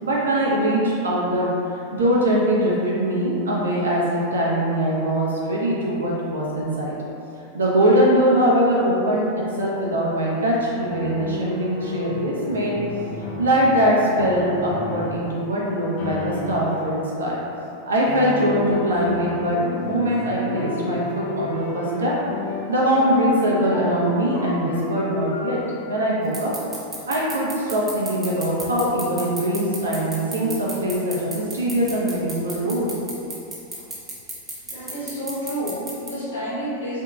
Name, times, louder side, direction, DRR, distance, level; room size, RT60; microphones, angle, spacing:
voice 1, 0.0-1.5 1.9-6.9 7.4-12.7 13.4-17.4 17.9-19.6 19.8-22.1 22.7-25.6 25.9-26.5 27.1-33.0, equal, 70° right, -5 dB, 0.5 m, -22 dB
sound 1, 10.8-15.4 16.0-17.1 18.1-25.6, left 2 dB, 50° left, 0.5 m, -32 dB
sound 2, 26.3-36.1, right 3 dB, 15° right, 0.6 m, -32 dB
voice 2, 34.7-37.0, equal, 70° left, -10 dB, 0.8 m, -30 dB
2.7 x 2.6 x 2.3 m, 2.7 s
figure-of-eight pair, 90°, 0 cm